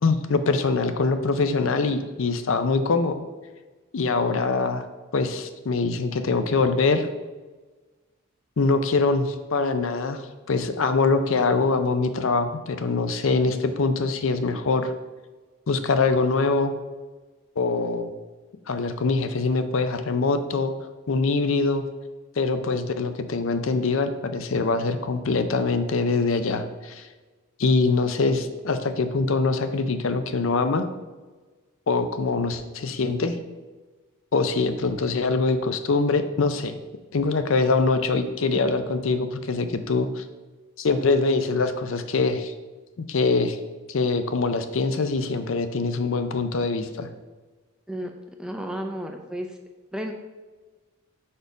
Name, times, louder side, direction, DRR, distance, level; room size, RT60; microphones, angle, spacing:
voice 1, 0.0-3.2 3.9-4.8 5.1-7.1 8.6-14.9 15.7-16.7 17.6-18.1 18.7-20.7 21.1-21.8 22.4-27.1 27.6-30.9 31.9-33.4 34.3-36.7 37.1-40.2 40.8-42.5 43.0-43.6 43.9-47.1, left 3 dB, 65° left, 9 dB, 0.5 m, -23 dB
voice 2, 48.4-49.6 49.9-50.1, equal, 5° right, 3 dB, 0.5 m, -32 dB
5.2 x 4.4 x 4.6 m, 1.3 s
head